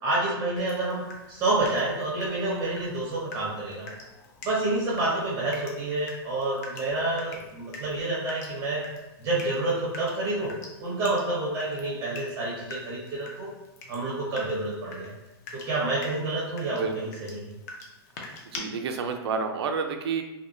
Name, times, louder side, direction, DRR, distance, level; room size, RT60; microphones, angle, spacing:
voice 1, 0.0-3.9 4.4-8.8 9.2-10.5 10.8-13.5 13.9-15.1 15.5-17.6, right 2 dB, 25° right, -6 dB, 0.5 m, -28 dB
Water tap faucet / Drip, 0.6-18.6, left 2 dB, 40° left, 0.5 m, -45 dB
voice 2, 18.2-20.2, right 5 dB, 90° right, 5 dB, 0.4 m, -30 dB
2.8 x 2.1 x 2.5 m, 0.99 s
hypercardioid pair, 155°, 13 cm